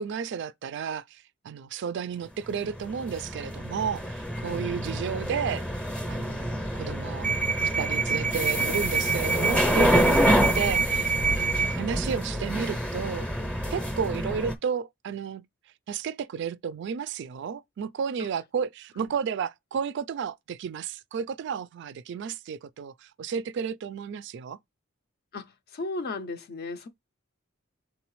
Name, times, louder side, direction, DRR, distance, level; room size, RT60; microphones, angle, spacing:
voice 1, 0.0-5.6 6.1-7.3 7.6-13.3 13.7-15.5 15.9-24.6, right 6 dB, 60° right, 0.3 m, -32 dB
sound 1, 2.5-14.6, right 1 dB, 5° left, 0.6 m, -26 dB
voice 2, 25.3-26.9, left 3 dB, 50° left, 0.5 m, -35 dB
3.9 x 3.7 x 3.0 m
head